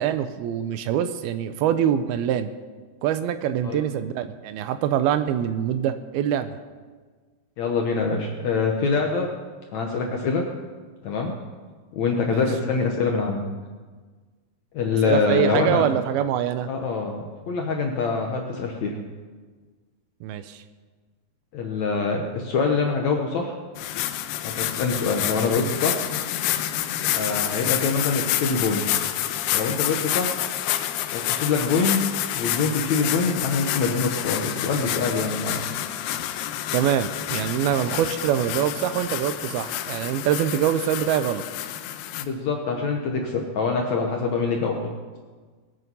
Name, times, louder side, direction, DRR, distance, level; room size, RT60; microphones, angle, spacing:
voice 1, 0.0-2.5 3.0-6.6 12.3-12.5 15.0-16.7 20.2-20.6 36.7-41.4, right 10 dB, 80° right, 11 dB, 2.4 m, -24 dB
voice 2, 7.6-9.3 9.7-10.5 11.0-11.3 11.9-13.4 14.7-15.9 16.7-19.0 21.5-23.5 24.4-26.0 27.1-28.9 29.5-30.4 31.1-32.0 32.3-35.8 42.2-44.9, left 4 dB, 70° left, 1 dB, 1.8 m, -25 dB
sound 1, 23.8-42.2, left 12 dB, 90° left, 2.7 m, -28 dB
20.5 x 9.3 x 5.4 m, 1.4 s
omnidirectional pair, 4.6 m